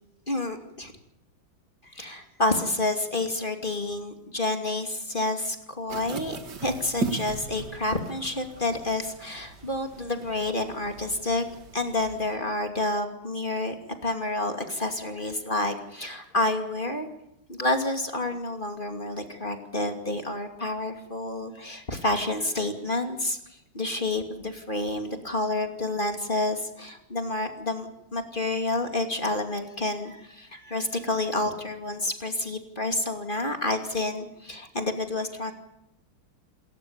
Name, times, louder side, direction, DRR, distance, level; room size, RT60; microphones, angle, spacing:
voice 1, 0.3-0.9 1.8-6.4 6.6-11.4 11.7-13.7 14.0-17.1 17.5-23.4 23.7-35.5, left 2 dB, 25° left, 5 dB, 2.6 m, -29 dB
sound 1, 5.9-12.4, right 5 dB, 55° right, 2.4 m, -38 dB
28.5 x 14.0 x 8.8 m, 0.83 s
omnidirectional pair, 2.3 m